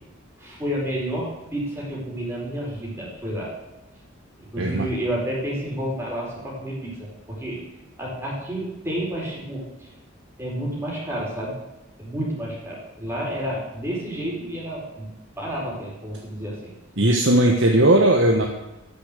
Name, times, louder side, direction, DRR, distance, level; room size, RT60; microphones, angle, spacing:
voice 1, 0.4-3.5 4.4-7.6 8.0-9.9 10.4-11.6 12.0-15.1 15.4-16.7, right 1 dB, 10° right, -5 dB, 4.9 m, -30 dB
voice 2, 17.0-18.5, right 1 dB, 60° right, 0 dB, 1.4 m, -17 dB
13.0 x 7.2 x 8.5 m, 1.0 s
head